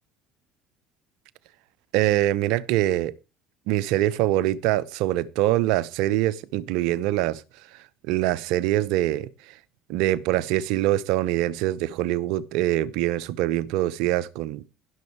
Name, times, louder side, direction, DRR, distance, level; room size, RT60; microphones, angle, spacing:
voice 1, 1.9-3.1 3.7-7.4 8.1-9.3 9.9-14.7, right 14 dB, 75° right, 0.8 m, -24 dB
16.0 x 6.4 x 4.6 m
supercardioid pair, 80°, 0 cm